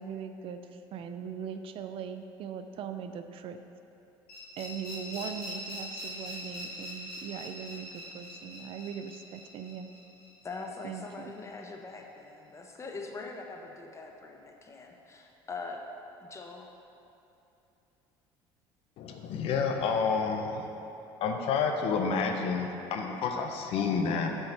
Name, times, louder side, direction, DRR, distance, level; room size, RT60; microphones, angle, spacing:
voice 1, 0.0-3.6 4.6-9.9 10.8-11.3, right 7 dB, 55° right, 8 dB, 0.4 m, -40 dB
sound 1, 4.3-11.1, left 1 dB, 80° left, 1.3 m, -43 dB
voice 2, 10.4-15.8 16.2-16.7, left 3 dB, 25° left, 2 dB, 0.8 m, -42 dB
voice 3, 19.0-20.7 21.2-24.4, left 5 dB, 60° left, 4 dB, 0.7 m, -29 dB
6.3 x 4.7 x 4.3 m, 2.8 s
supercardioid pair, 85°, 11 cm